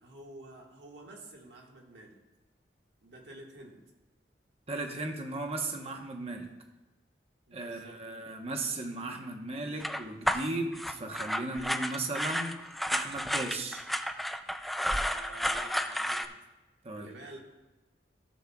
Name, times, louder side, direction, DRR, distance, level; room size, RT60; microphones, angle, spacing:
voice 1, 0.0-2.2 3.0-3.8 7.5-8.0 15.0-16.3 16.9-17.4, right 1 dB, 75° right, 0 dB, 1.7 m, -49 dB
voice 2, 4.7-6.5 7.5-12.6 12.9-13.8 16.8-17.1, right 2 dB, 35° right, 3 dB, 1.0 m, -36 dB
sound 1, 9.8-16.2, equal, ahead, 0.3 m, -32 dB
15.5 x 7.3 x 2.3 m, 1.1 s
head